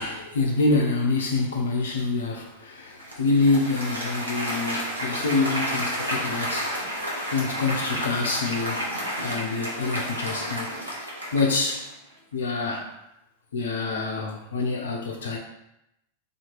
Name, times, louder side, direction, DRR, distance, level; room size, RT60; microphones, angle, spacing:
voice 1, 0.0-8.9 9.2-11.0 11.3-11.9 12.3-12.9 13.5-15.4, left 3 dB, 65° left, 1 dB, 0.7 m, -26 dB
Applause, 3.0-11.9, equal, 80° right, 0.9 m, -31 dB
2.9 x 2.7 x 4.4 m, 0.86 s
figure-of-eight pair, 90°, 0 cm